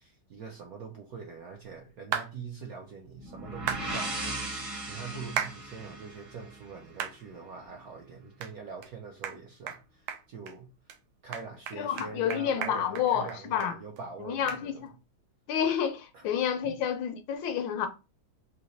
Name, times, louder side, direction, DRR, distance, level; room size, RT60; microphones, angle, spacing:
voice 1, 0.0-4.6 4.9-10.7 11.2-14.8 16.1-16.3 16.6-16.7, right 5 dB, 70° right, 0.8 m, -44 dB
sound 1, 2.1-2.3 3.7-3.9 5.4-5.6 6.1-6.2 7.0-7.2 7.6-7.7 8.4-8.5 8.8-8.9 9.2-9.4 9.7-9.8 10.1-10.5 10.9-11.0 11.3-13.7 14.0-14.1 14.5-14.6, right 9 dB, 90° right, 1.5 m, -34 dB
sound 2, 3.2-7.0, right 2 dB, 30° right, 0.6 m, -37 dB
voice 2, 11.8-13.8 14.2-14.9 15.5-17.9, left 8 dB, 75° left, 1.2 m, -29 dB
4.0 x 2.8 x 3.1 m
omnidirectional pair, 2.2 m